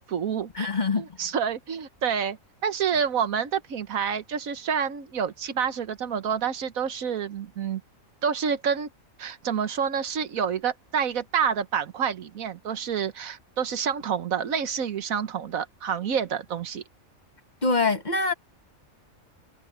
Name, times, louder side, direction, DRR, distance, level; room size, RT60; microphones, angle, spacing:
voice 1, 0.0-0.7 1.0-2.4 2.6-7.8 8.2-8.9 9.2-16.8, right 7 dB, 85° right, 1.5 m, -28 dB
voice 2, 0.5-1.1 17.6-18.3, left 3 dB, 35° left, 1.5 m, -24 dB
omnidirectional pair, 1.4 m